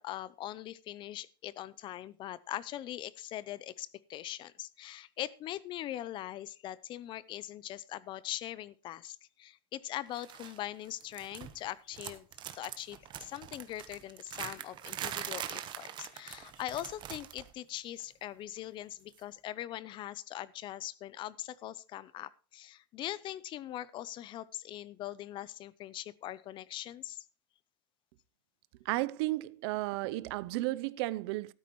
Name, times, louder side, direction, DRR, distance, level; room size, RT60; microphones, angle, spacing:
voice 1, 0.0-12.3 12.5-27.2, left 13 dB, 35° left, 0.6 m, -41 dB
sound 1, 10.2-10.6 10.9-11.7 11.9-17.5 17.8-18.0 19.1-19.2, right 10 dB, 35° right, 1.1 m, -42 dB
voice 2, 28.8-31.5, right 18 dB, 75° right, 0.6 m, -33 dB
13.5 x 13.0 x 3.1 m
cardioid pair, 155°, 14 cm